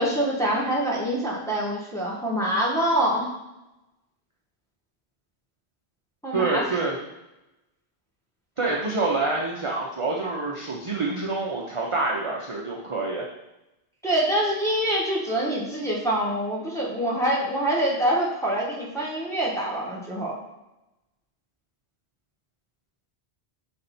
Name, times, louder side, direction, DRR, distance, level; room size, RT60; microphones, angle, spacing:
voice 1, 0.0-3.3 6.2-6.8 14.0-20.3, right 1 dB, 5° left, -6 dB, 1.5 m, -25 dB
voice 2, 6.3-6.9 8.6-13.2, right 3 dB, 30° right, -3 dB, 0.7 m, -27 dB
6.6 x 4.3 x 4.3 m, 0.94 s
omnidirectional pair, 1.1 m